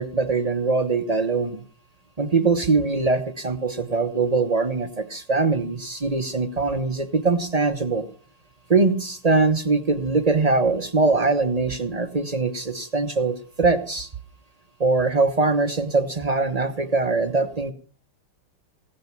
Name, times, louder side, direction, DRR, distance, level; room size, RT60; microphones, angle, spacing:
voice 1, 0.0-1.6 2.2-8.0 8.7-14.1 14.8-17.7, right 3 dB, 40° right, 8 dB, 0.5 m, -22 dB
16.5 x 10.5 x 5.9 m, 0.41 s
omnidirectional pair, 2.4 m